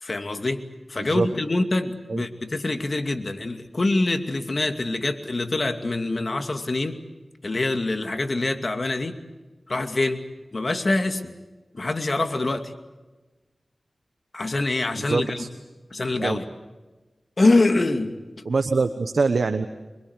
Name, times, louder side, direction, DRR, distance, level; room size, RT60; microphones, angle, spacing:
voice 1, 0.0-7.0 7.4-9.2 9.7-11.4 11.7-12.7 14.3-15.4 15.9-16.5 17.4-18.2, left 2 dB, 55° left, 7 dB, 2.5 m, -25 dB
voice 2, 15.0-15.5 16.2-16.4 18.4-19.7, right 4 dB, 80° right, 8 dB, 1.1 m, -24 dB
25.5 x 23.0 x 8.2 m, 1.2 s
wide cardioid pair, 50°, 0 cm